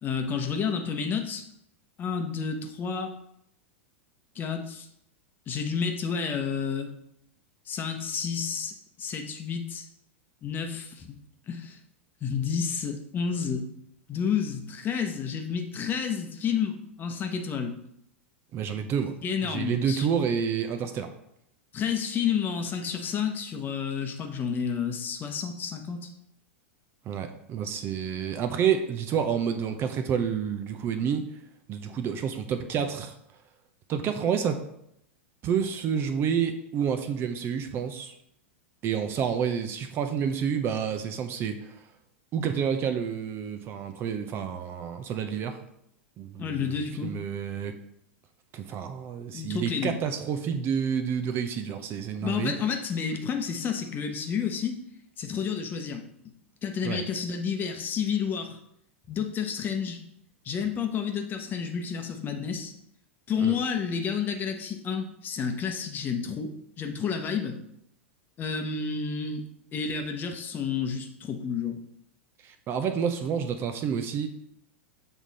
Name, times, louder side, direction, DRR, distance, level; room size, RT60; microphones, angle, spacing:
voice 1, 0.0-1.4 2.0-3.1 4.3-4.9 5.5-6.9 7.7-9.9 10.4-11.1 11.5-11.8 12.2-13.6 14.1-17.8 19.2-20.1 21.7-26.1 46.4-47.2 49.3-50.0 52.2-54.8 55.2-56.1 56.6-58.6 59.1-60.0 60.4-62.7 63.3-67.6 68.4-69.4 69.7-71.8, left 6 dB, 30° left, 5 dB, 0.9 m, -30 dB
voice 2, 18.5-19.1 19.4-21.1 27.1-31.2 31.7-33.1 33.9-34.6 35.4-38.1 38.8-41.8 42.3-45.6 46.2-47.7 48.5-52.5 56.8-57.0 63.4-63.5 72.4-74.3, right 7 dB, 35° right, 7 dB, 0.7 m, -29 dB
7.2 x 3.6 x 4.1 m, 0.75 s
hypercardioid pair, 100°, 7 cm